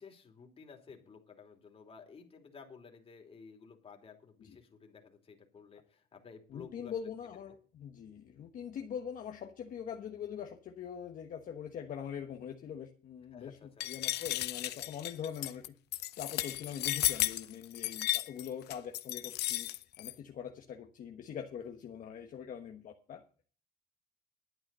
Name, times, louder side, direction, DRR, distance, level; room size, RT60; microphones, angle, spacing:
voice 1, 0.0-6.9 13.3-13.9, left 5 dB, 35° left, 3 dB, 3.0 m, -54 dB
voice 2, 6.5-13.6 13.8-15.6 16.2-19.7 20.0-23.2, left 8 dB, 55° left, 4 dB, 1.3 m, -43 dB
sound 1, 13.8-20.1, left 16 dB, 75° left, 0.7 m, -34 dB
11.5 x 8.8 x 5.5 m, 0.42 s
cardioid pair, 110°, 17 cm